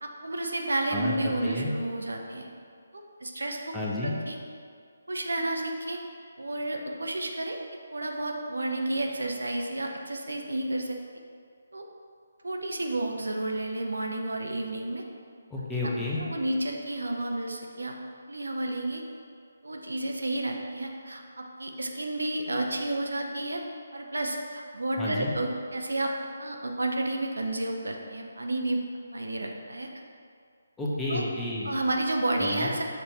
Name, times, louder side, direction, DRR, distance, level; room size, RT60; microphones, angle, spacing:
voice 1, 0.0-2.5 2.9-3.8 4.0-4.4 5.1-6.0 6.4-7.6 7.9-11.0 11.7-11.8 12.4-15.0 15.8-15.9 16.2-17.9 18.3-19.0 19.6-23.6 23.9-26.1 26.4-28.8 29.1-29.9 31.1-31.2 31.6-32.8, right 1 dB, 65° right, 2 dB, 0.7 m, -31 dB
voice 2, 1.4-1.7 3.7-4.1 15.5-16.2 25.0-25.3 30.8-31.7 32.4-32.7, left 2 dB, 5° left, -7 dB, 0.8 m, -31 dB
6.7 x 4.3 x 4.3 m, 2.2 s
figure-of-eight pair, 145°, 0 cm